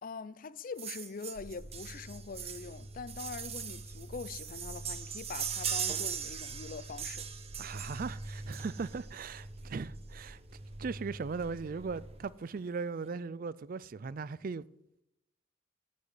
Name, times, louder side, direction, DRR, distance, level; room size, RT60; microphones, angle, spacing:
voice 1, 0.0-7.3, left 5 dB, 45° left, 0.5 m, -43 dB
sound 1, 0.8-9.1 10.2-10.3 10.6-10.7 10.9-11.1 11.4-12.0 12.5-12.6, right 8 dB, 35° right, 1.0 m, -40 dB
sound 2, 1.3-12.2, right 1 dB, 15° right, 3.7 m, -47 dB
voice 2, 7.6-10.4 10.8-14.7, right 4 dB, 50° right, 0.4 m, -38 dB
11.5 x 6.4 x 9.2 m
head